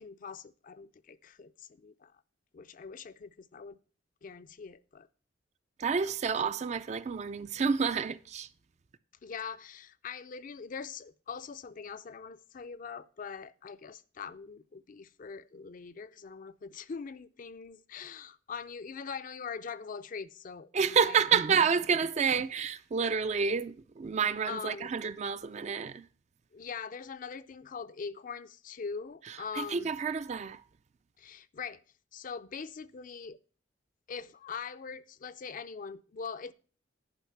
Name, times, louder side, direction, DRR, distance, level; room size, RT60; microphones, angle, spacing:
voice 1, 0.0-2.1 2.5-3.8 4.2-5.1 6.0-6.1 9.2-21.2 21.6-21.7 24.5-24.9 26.5-29.9 31.2-31.8 32.1-33.4 34.1-36.5, left 5 dB, 45° left, 0.4 m, -42 dB
voice 2, 5.8-8.5 20.7-26.1 29.5-30.6, right 6 dB, 40° right, 0.4 m, -29 dB
10.5 x 5.3 x 5.7 m
head